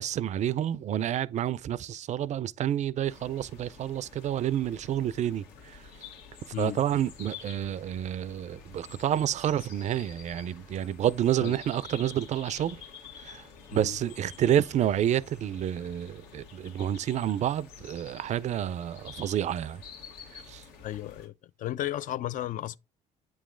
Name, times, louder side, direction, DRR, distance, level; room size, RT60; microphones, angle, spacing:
voice 1, 0.0-5.8 6.6-12.8 13.2-13.4 13.7-19.8 20.5-20.6, right 11 dB, 45° right, 0.4 m, -29 dB
sound 1, 3.0-21.3, left 6 dB, 80° left, 1.4 m, -49 dB
voice 2, 6.5-6.8 11.4-11.6 13.7-14.0 20.8-21.3 21.6-22.8, left 13 dB, 55° left, 0.4 m, -34 dB
8.4 x 3.1 x 3.7 m
hypercardioid pair, 60°, 17 cm